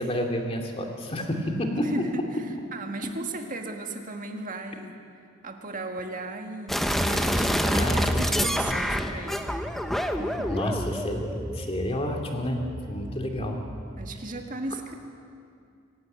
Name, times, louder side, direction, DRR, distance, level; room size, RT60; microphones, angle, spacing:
voice 1, 0.0-1.9 7.7-8.3 10.5-12.6 12.9-13.6, left 1 dB, 30° left, 2 dB, 2.4 m, -30 dB
voice 2, 1.8-2.5 2.7-4.9 5.4-9.4 10.2-10.5 14.0-14.9, right 2 dB, 40° right, 4 dB, 1.8 m, -36 dB
sound 1, 6.7-14.2, equal, ahead, 0.9 m, -28 dB
25.5 x 12.0 x 9.2 m, 2.4 s
head